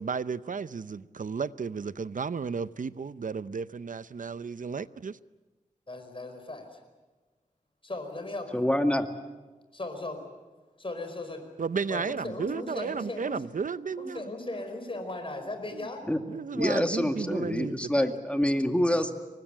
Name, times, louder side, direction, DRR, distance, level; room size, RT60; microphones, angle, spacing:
voice 1, 0.0-5.2 11.6-14.2 15.7-15.9 16.3-18.1, right 5 dB, 70° right, 0.7 m, -33 dB
voice 2, 5.9-6.7 7.8-8.6 9.7-10.2 10.8-11.4 11.9-13.4 14.0-16.0, left 2 dB, 40° left, 4.9 m, -37 dB
voice 3, 8.5-9.1 16.1-16.2 16.5-19.1, left 1 dB, 10° left, 2.1 m, -26 dB
24.5 x 19.5 x 9.1 m
wide cardioid pair, 65°, 14 cm